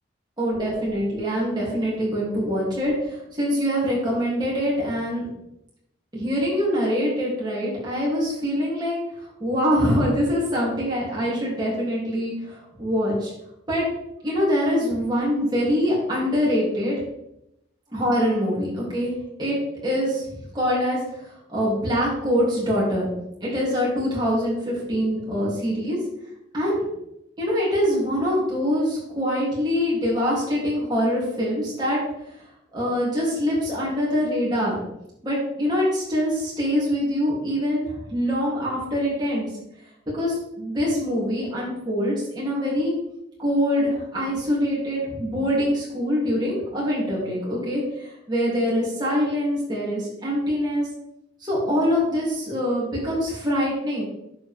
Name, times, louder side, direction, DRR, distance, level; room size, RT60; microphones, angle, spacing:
voice 1, 0.4-5.3 6.1-9.0 9.4-13.3 13.7-13.8 14.2-17.0 17.9-19.1 19.4-19.6 19.8-23.1 23.4-26.0 26.5-26.8 27.4-32.0 32.7-34.8 35.2-39.5 40.1-42.9 43.4-50.9 51.4-54.0, equal, 25° right, -6 dB, 3.2 m, -24 dB
11.0 x 5.3 x 3.7 m, 0.82 s
head